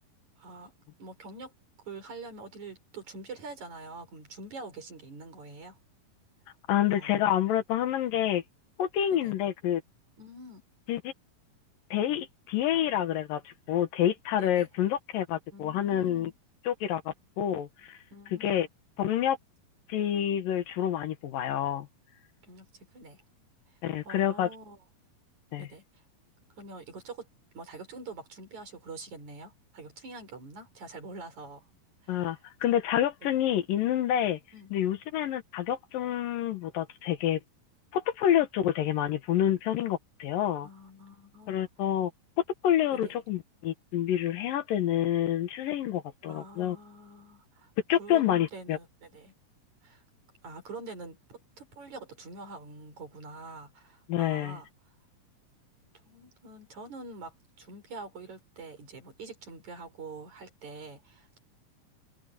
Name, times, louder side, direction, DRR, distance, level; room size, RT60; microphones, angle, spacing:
voice 1, 0.4-0.7 1.0-1.5 1.9-5.8 6.9-7.2 9.1-9.3 10.2-10.6 14.4-14.7 15.5-16.3 18.1-18.7 22.4-23.2 23.7-23.8 24.0-24.8 25.6-26.0 26.6-27.3 27.6-31.7 32.0-32.4 34.5-34.7 40.6-41.6 42.9-43.2 46.2-47.7 48.0-49.3 49.8-50.0 50.4-54.7 56.0-61.4, right 3 dB, 55° right, 6.9 m, -45 dB
voice 2, 6.7-8.4 8.8-9.8 10.9-11.1 11.9-16.3 16.7-18.0 18.4-18.7 19.0-19.4 19.9-21.9 23.8-24.5 25.5-25.7 32.1-34.4 34.7-37.4 37.9-40.7 41.5-42.1 42.6-46.8 47.9-48.8 54.1-54.6, left 11 dB, 75° left, 2.9 m, -28 dB
omnidirectional pair, 4.1 m